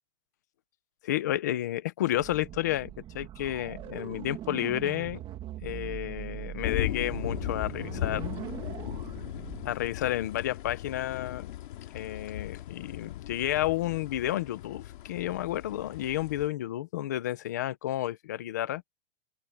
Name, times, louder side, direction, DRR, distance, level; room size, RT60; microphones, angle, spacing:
voice 1, 1.0-5.2 5.6-8.2 9.6-11.5 11.9-18.8, left 13 dB, 20° left, 0.4 m, -31 dB
sound 1, 2.1-9.7, right 12 dB, 15° right, 1.9 m, -41 dB
sound 2, 6.6-16.5, left 13 dB, 50° left, 2.1 m, -37 dB
open air
hypercardioid pair, 175°, 32 cm